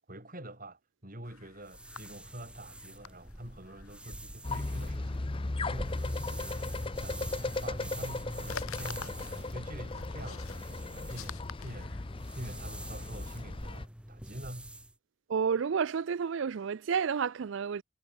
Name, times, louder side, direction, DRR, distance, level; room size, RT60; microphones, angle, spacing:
voice 1, 0.1-5.3 5.6-6.7 7.0-12.1 12.3-14.7, right 1 dB, 40° right, 6.7 m, -46 dB
sound 1, 1.2-12.8, left 7 dB, 85° left, 1.3 m, -50 dB
sound 2, 1.6-14.9, right 1 dB, 5° right, 2.8 m, -47 dB
sound 3, 4.4-13.8, left 2 dB, 25° left, 0.6 m, -37 dB
voice 2, 15.3-17.8, right 6 dB, 60° right, 0.4 m, -30 dB
head